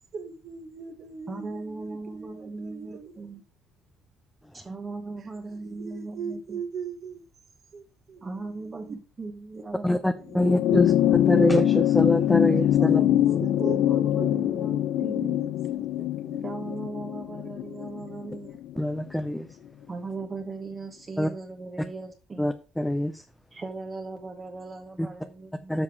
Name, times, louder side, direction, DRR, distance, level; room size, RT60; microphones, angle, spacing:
voice 1, 0.1-3.4 5.2-7.2 7.7-9.0 9.6-10.3 12.9-16.6, right 5 dB, 50° right, 1.1 m, -41 dB
voice 2, 1.3-3.4 4.5-6.6 8.2-10.4 12.8-15.4 16.4-18.6 19.9-22.5 23.5-25.7, right 3 dB, 25° right, 1.0 m, -38 dB
voice 3, 9.8-10.9 11.3-13.0 18.8-19.5 21.2-21.3 22.4-23.2 25.0-25.1 25.7-25.8, left 1 dB, 5° left, 0.4 m, -25 dB
sound 1, 10.3-19.0 20.2-20.3, left 11 dB, 70° left, 0.5 m, -24 dB
7.2 x 5.3 x 4.7 m
cardioid pair, 115°, 0 cm